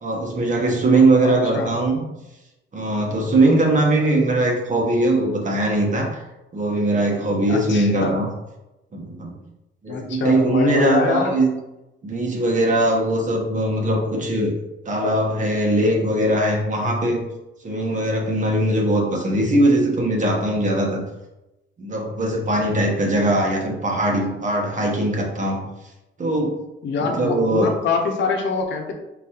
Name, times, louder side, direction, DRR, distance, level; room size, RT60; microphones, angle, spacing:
voice 1, 0.0-2.0 2.7-6.2 6.5-8.3 8.9-9.4 9.8-11.5 12.0-14.5 14.8-17.2 17.6-21.0 21.8-25.6 26.2-26.5 27.0-27.7, right 1 dB, 40° right, 0 dB, 1.2 m, -20 dB
voice 2, 1.2-1.7 4.0-4.1 7.5-8.2 9.9-11.3 26.8-28.9, left 4 dB, 70° left, 2 dB, 0.9 m, -24 dB
4.1 x 3.9 x 2.9 m, 0.96 s
cardioid pair, 90°, 20 cm